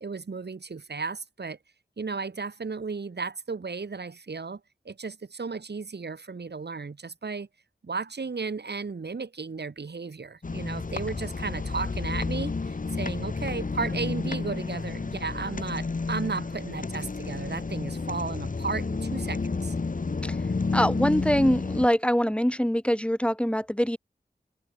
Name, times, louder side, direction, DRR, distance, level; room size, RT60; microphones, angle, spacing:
voice 1, 0.0-1.6 2.0-4.6 4.8-7.5 7.8-19.7, right 4 dB, 80° right, 1.3 m, -34 dB
sound 1, 10.4-21.9, left 4 dB, 50° left, 0.9 m, -31 dB
voice 2, 20.7-24.0, equal, 5° left, 1.7 m, -24 dB
wide cardioid pair, 55°, 17 cm